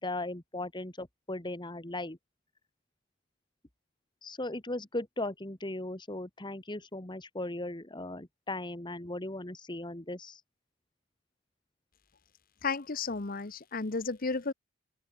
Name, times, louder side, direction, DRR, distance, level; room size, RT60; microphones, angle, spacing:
voice 1, 0.0-2.2 4.2-10.4, left 2 dB, 25° left, 2.0 m, -37 dB
voice 2, 12.6-14.5, left 4 dB, 45° left, 1.0 m, -33 dB
open air
head